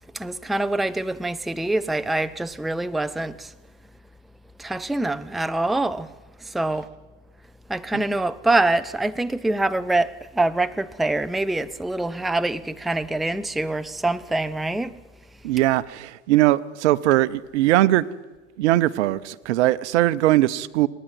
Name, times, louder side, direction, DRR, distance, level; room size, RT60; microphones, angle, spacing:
voice 1, 0.1-3.5 4.6-6.1 6.5-6.9 7.7-14.9, right 2 dB, ahead, 0.6 m, -25 dB
voice 2, 15.4-18.1 18.6-20.9, right 15 dB, 65° right, 0.9 m, -20 dB
28.0 x 10.5 x 9.6 m
hypercardioid pair, 90°, 36 cm